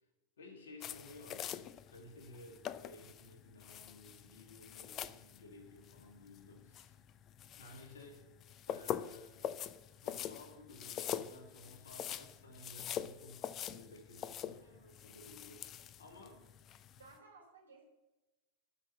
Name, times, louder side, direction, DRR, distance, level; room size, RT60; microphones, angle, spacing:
voice 1, 0.4-7.0 7.6-8.2 8.7-9.5 10.0-15.7 16.0-16.4, left 2 dB, 65° left, 4 dB, 2.0 m, -55 dB
sound 1, 0.8-17.1, left 10 dB, 30° left, 0.4 m, -45 dB
voice 2, 14.5-14.9 16.3-16.4 17.0-17.8, right 4 dB, 70° right, -1 dB, 3.5 m, -60 dB
12.0 x 5.7 x 6.8 m, 1.1 s
figure-of-eight pair, 90°, 0 cm